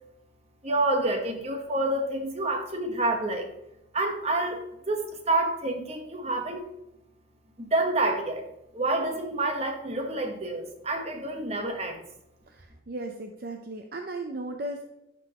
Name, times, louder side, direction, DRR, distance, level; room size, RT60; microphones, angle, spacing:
voice 1, 0.6-3.5 3.9-4.6 4.9-6.7 7.6-8.4 8.7-12.0, right 2 dB, 35° right, 4 dB, 1.1 m, -28 dB
voice 2, 12.5-14.9, right 2 dB, 50° right, 4 dB, 0.6 m, -36 dB
11.0 x 6.1 x 2.9 m, 0.87 s
head